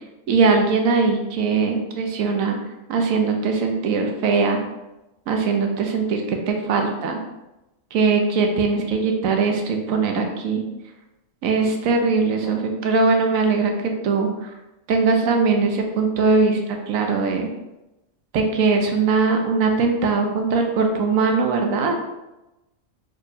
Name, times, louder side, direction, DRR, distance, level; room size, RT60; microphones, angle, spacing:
voice 1, 0.3-2.6 2.9-4.6 5.3-7.2 7.9-10.6 11.4-13.7 14.0-14.5 14.9-16.6 16.9-17.5 18.3-21.9, right 4 dB, 90° right, 3 dB, 1.1 m, -20 dB
4.3 x 3.1 x 2.7 m, 0.97 s
omnidirectional pair, 1.4 m